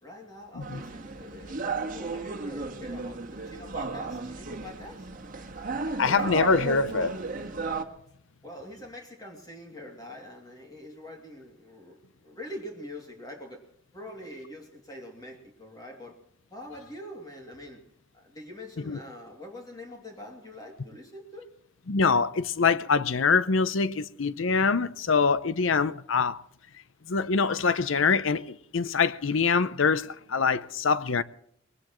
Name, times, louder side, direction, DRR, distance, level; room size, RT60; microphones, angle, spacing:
voice 1, 0.0-5.1 8.4-13.7 13.9-16.2 16.5-17.8 18.1-21.5, left 1 dB, 20° left, 2.6 m, -44 dB
sound 1, 0.6-7.8, right 4 dB, 45° right, 1.6 m, -34 dB
voice 2, 6.0-7.2 18.9-19.0 21.9-26.4 27.1-31.2, left 5 dB, 75° left, 0.7 m, -24 dB
21.5 x 19.0 x 3.1 m
head